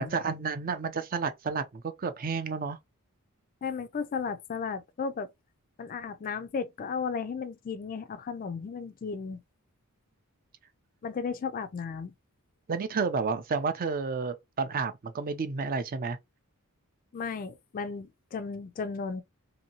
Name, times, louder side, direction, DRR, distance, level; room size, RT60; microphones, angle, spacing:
voice 1, 0.0-2.8 12.7-16.2, right 5 dB, 40° right, 0.4 m, -31 dB
voice 2, 3.6-5.3 5.8-9.4 11.0-12.1 17.1-19.2, left 5 dB, 40° left, 0.3 m, -34 dB
2.7 x 2.6 x 2.7 m
head